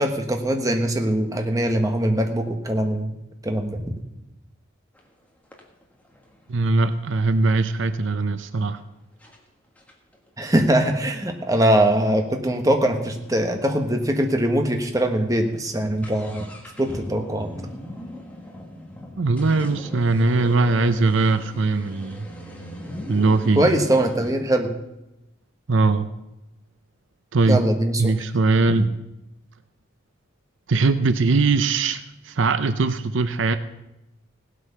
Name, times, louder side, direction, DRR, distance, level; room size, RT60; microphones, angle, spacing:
voice 1, 0.0-3.1 3.4-3.9 10.4-16.5 16.8-17.5 23.6-24.7 27.5-28.1, right 1 dB, 15° right, 4 dB, 1.2 m, -22 dB
sound 1, 4.9-5.1 5.5-8.2 8.8-8.9 9.2-9.4 9.8-13.4 13.7-13.8 14.0-14.1 14.7-14.9 15.2-24.3, equal, 5° left, 1.6 m, -40 dB
voice 2, 6.5-8.8 19.2-22.3 23.1-23.8 25.7-26.1 27.3-27.6 28.0-28.8 30.7-33.6, right 3 dB, 65° right, 11 dB, 0.6 m, -20 dB
17.0 x 8.2 x 5.7 m, 0.94 s
head